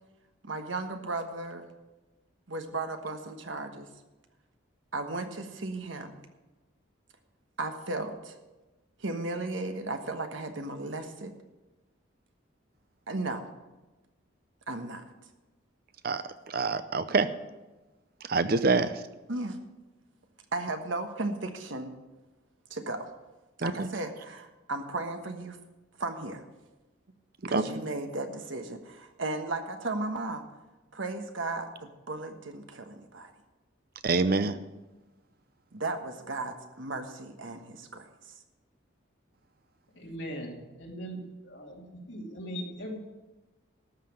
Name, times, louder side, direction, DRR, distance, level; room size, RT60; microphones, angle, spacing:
voice 1, 0.4-1.7 2.5-3.9 4.9-6.2 7.6-8.4 9.0-11.3 13.1-13.5 14.7-15.0 19.3-19.6 20.5-21.9 22.7-23.1 23.6-25.6 26.0-26.4 27.5-30.4 30.9-33.3 35.7-38.1, right 2 dB, 75° right, 6 dB, 1.3 m, -35 dB
voice 2, 16.0-17.3 18.3-19.0 23.6-23.9 27.5-27.6 34.0-34.6, right 3 dB, 50° right, 12 dB, 0.6 m, -26 dB
voice 3, 39.9-43.0, equal, 70° left, -1 dB, 2.8 m, -40 dB
13.0 x 5.9 x 8.8 m, 1.1 s
head